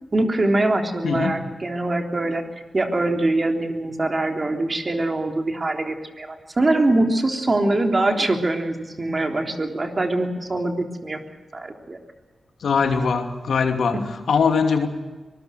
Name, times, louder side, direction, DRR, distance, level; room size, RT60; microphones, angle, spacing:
voice 1, 0.1-2.4 2.7-11.2 11.5-12.0, right 2 dB, 40° right, 3 dB, 3.6 m, -23 dB
voice 2, 1.0-1.4 12.6-14.0 14.3-14.9, left 5 dB, 75° left, 4 dB, 2.7 m, -21 dB
24.0 x 19.5 x 6.5 m, 1.3 s
cardioid pair, 50°, 0 cm